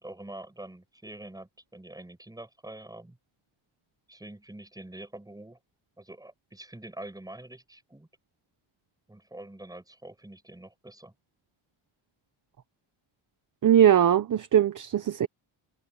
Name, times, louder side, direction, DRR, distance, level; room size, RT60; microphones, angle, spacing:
voice 1, 0.0-3.2 4.1-5.6 6.0-8.1 9.1-11.1, right 1 dB, 5° right, 6.6 m, -45 dB
voice 2, 13.6-15.3, right 10 dB, 40° right, 1.0 m, -20 dB
cardioid pair, 160°, 49 cm